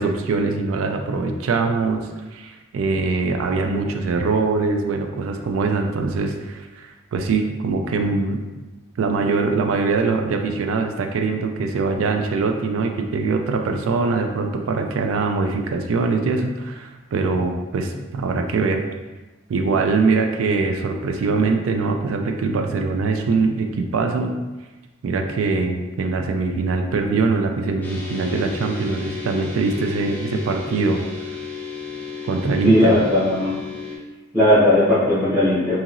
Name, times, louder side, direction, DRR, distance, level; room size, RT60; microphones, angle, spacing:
voice 1, 0.0-8.4 9.0-18.8 19.5-24.3 25.0-31.0 32.3-33.0, right 4 dB, 80° right, 4 dB, 0.3 m, -22 dB
sound 1, 27.8-34.0, left 5 dB, 10° left, 0.3 m, -33 dB
voice 2, 32.6-33.5 34.3-35.8, left 1 dB, 5° right, -14 dB, 0.8 m, -17 dB
2.8 x 2.8 x 2.5 m, 1.2 s
head